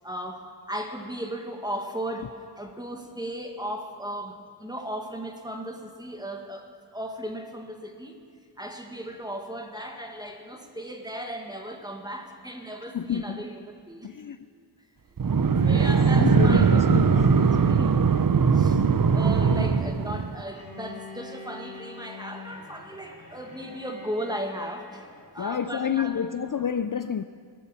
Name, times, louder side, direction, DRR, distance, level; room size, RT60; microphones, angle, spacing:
voice 1, 0.0-6.7 6.9-8.2 8.6-14.1 15.1-15.2 15.6-16.8 17.4-17.9 18.5-25.0 25.3-26.2, right 1 dB, 10° right, 1.8 m, -36 dB
voice 2, 12.9-13.4 14.0-14.4 15.7-17.7 19.6-19.7 25.4-27.2, left 8 dB, 50° left, 0.5 m, -29 dB
sound 1, 15.2-20.4, right 5 dB, 50° right, 0.7 m, -20 dB
Bowed string instrument, 20.5-25.4, left 3 dB, 35° left, 2.1 m, -45 dB
20.5 x 8.6 x 7.0 m
wide cardioid pair, 50°, 42 cm